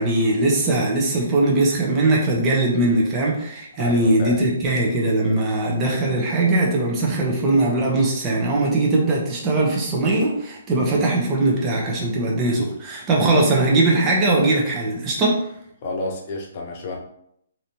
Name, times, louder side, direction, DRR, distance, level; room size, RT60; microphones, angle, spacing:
voice 1, 0.0-15.4, right 2 dB, 25° right, -3 dB, 0.8 m, -20 dB
voice 2, 3.8-4.4 15.8-17.0, left 2 dB, 40° left, 0 dB, 0.7 m, -30 dB
3.1 x 2.7 x 2.8 m, 0.73 s
hypercardioid pair, 145°, 0 cm